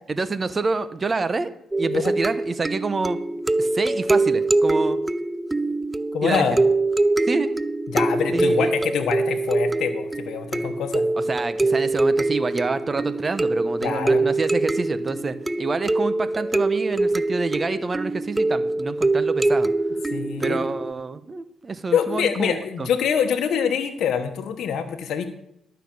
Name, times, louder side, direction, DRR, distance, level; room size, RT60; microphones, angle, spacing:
voice 1, 0.2-1.5 1.8-3.2 3.6-5.0 6.2-6.4 7.3-7.6 8.3-8.7 11.2-19.7 20.4-22.9, right 3 dB, 30° right, 12 dB, 0.9 m, -27 dB
sound 1, 1.7-20.9, right 2 dB, 15° right, 0.4 m, -24 dB
voice 2, 6.1-6.6 7.9-11.0 13.8-14.2 20.1-20.6 21.9-25.3, left 7 dB, 70° left, 5 dB, 1.1 m, -25 dB
11.5 x 5.8 x 7.4 m, 0.77 s
cardioid pair, 90°, 0 cm